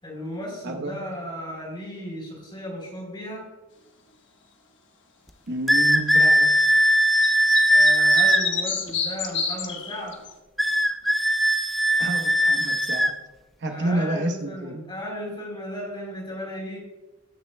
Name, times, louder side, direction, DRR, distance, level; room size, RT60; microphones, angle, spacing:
voice 1, 0.0-3.4 7.7-10.2 13.7-16.8, equal, 25° left, -2 dB, 3.5 m, -35 dB
voice 2, 0.6-1.0 5.5-6.5 12.0-13.1 13.6-14.8, right 2 dB, 55° right, 3 dB, 1.0 m, -29 dB
sound 1, 5.7-8.4 10.6-13.1, equal, ahead, 0.4 m, -19 dB
sound 2, 7.2-10.3, left 6 dB, 60° left, 1.2 m, -28 dB
19.5 x 6.6 x 2.2 m, 1.1 s
head